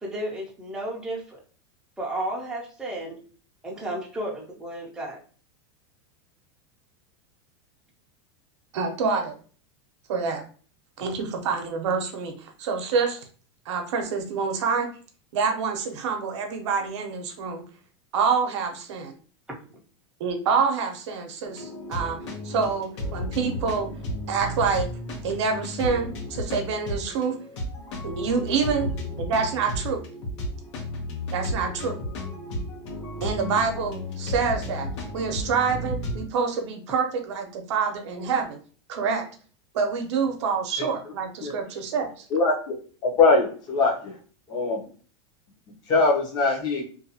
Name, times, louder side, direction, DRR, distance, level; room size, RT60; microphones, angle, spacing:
voice 1, 0.0-1.4 2.0-3.2 3.6-5.2, right 1 dB, 5° right, -3 dB, 0.5 m, -33 dB
voice 2, 8.7-9.3 10.1-10.4 11.0-13.2 13.7-14.9 15.3-17.6 18.1-19.2 20.2-22.2 22.4-23.9 24.3-24.9 25.2-27.3 28.0-28.9 29.2-30.0 31.3-32.0 33.2-34.9 35.1-38.6 38.9-39.2 39.7-42.3, right 5 dB, 75° right, 4 dB, 0.7 m, -26 dB
sound 1, 21.4-36.2, left 1 dB, 80° left, 0.9 m, -33 dB
voice 3, 43.0-44.1 44.5-44.8 45.9-46.9, left 3 dB, 30° left, 0 dB, 0.7 m, -21 dB
2.5 x 2.3 x 2.7 m, 0.41 s
supercardioid pair, 155°, 15 cm